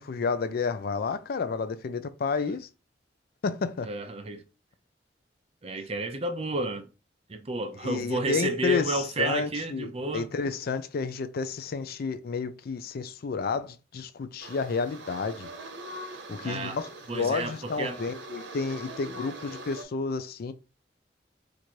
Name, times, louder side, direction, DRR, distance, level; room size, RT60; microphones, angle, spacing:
voice 1, 0.0-2.7 3.4-3.9 7.8-15.5 16.3-20.5, left 5 dB, 55° left, 0.4 m, -31 dB
voice 2, 3.8-4.4 5.6-6.9 7.3-10.3 16.4-16.8 17.1-18.0, right 2 dB, 35° right, 0.5 m, -31 dB
sound 1, 14.4-19.8, right 2 dB, 75° right, 0.8 m, -42 dB
3.1 x 2.5 x 4.3 m
head